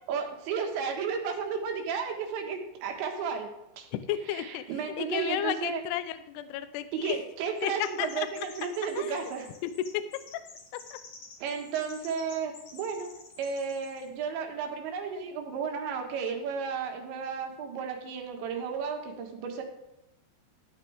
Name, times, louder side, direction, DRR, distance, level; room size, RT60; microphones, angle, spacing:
voice 1, 0.1-3.5 3.8-3.9 4.3-5.8 6.9-9.5 11.4-19.6, right 6 dB, 90° right, 3 dB, 3.8 m, -33 dB
voice 2, 3.9-4.6 5.0-7.2 7.6-8.3 9.0-9.2 9.6-10.2 10.9-11.0, left 11 dB, 80° left, 12 dB, 2.5 m, -32 dB
Chirp tweet, 7.6-14.1, left 4 dB, 50° left, 2.7 m, -51 dB
13.5 x 8.7 x 3.5 m, 0.93 s
omnidirectional pair, 5.0 m